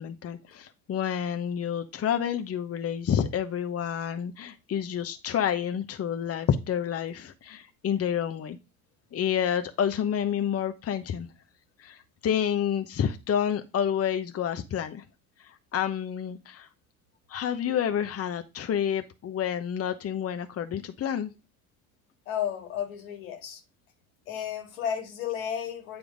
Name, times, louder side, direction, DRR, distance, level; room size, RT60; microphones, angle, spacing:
voice 1, 0.0-8.6 9.1-11.3 11.8-15.0 15.4-16.7 17.3-21.3, left 9 dB, 35° left, 1.0 m, -29 dB
voice 2, 22.3-23.6 24.3-26.0, left 9 dB, 85° left, 2.2 m, -33 dB
9.2 x 3.4 x 5.1 m
hypercardioid pair, 70°, 40 cm